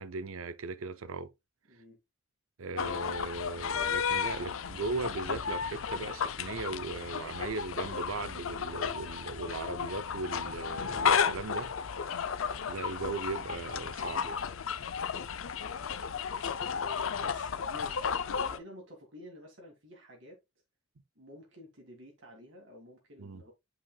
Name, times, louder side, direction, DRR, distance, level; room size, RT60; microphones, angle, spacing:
voice 1, 0.0-1.3 2.6-11.7 12.7-14.4 16.9-17.1 23.2-23.4, right 3 dB, 85° right, 0.6 m, -38 dB
voice 2, 1.7-2.0 4.4-4.6 14.0-14.3 17.2-20.4 21.2-23.5, equal, 65° right, 2.0 m, -51 dB
sound 1, 2.8-18.6, left 6 dB, 80° left, 0.5 m, -33 dB
8.6 x 5.0 x 2.3 m
head